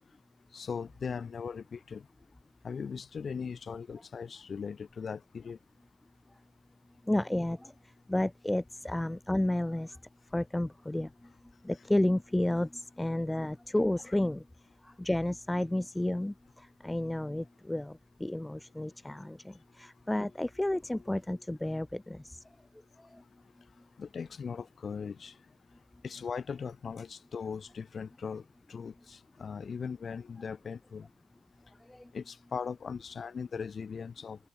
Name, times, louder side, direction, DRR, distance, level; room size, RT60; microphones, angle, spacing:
voice 1, 0.5-2.0 2.6-5.6 24.0-25.3 26.0-28.4 28.7-31.1 32.1-34.4, left 6 dB, 45° left, 7.6 m, -39 dB
voice 2, 7.1-7.7 8.1-10.0 10.3-11.1 11.6-14.4 15.0-16.3 16.8-22.4 31.9-32.0, left 1 dB, 10° left, 6.7 m, -31 dB
cardioid pair, 90°, 0 cm